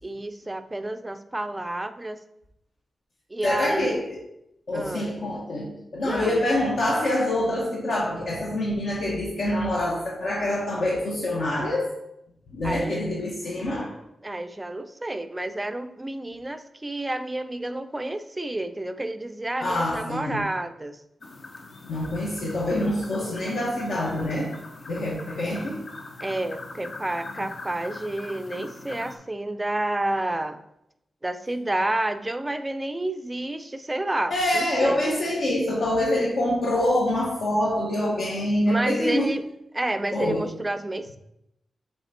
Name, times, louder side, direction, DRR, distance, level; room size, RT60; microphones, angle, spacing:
voice 1, 0.0-2.2 3.3-4.0 4.7-5.1 6.0-6.4 12.6-13.0 14.2-21.0 26.2-30.6 31.2-35.0 38.7-39.4 39.7-41.2, right 1 dB, 15° right, 8 dB, 0.4 m, -30 dB
voice 2, 3.4-4.2 4.7-11.9 12.5-14.0 19.6-20.4 21.9-24.5 24.9-25.8 34.3-39.3 40.1-40.4, left 1 dB, 70° left, -4 dB, 1.3 m, -25 dB
sound 1, 21.2-29.2, left 3 dB, 55° left, 0.8 m, -42 dB
7.0 x 3.6 x 4.2 m, 0.81 s
wide cardioid pair, 140°, 0 cm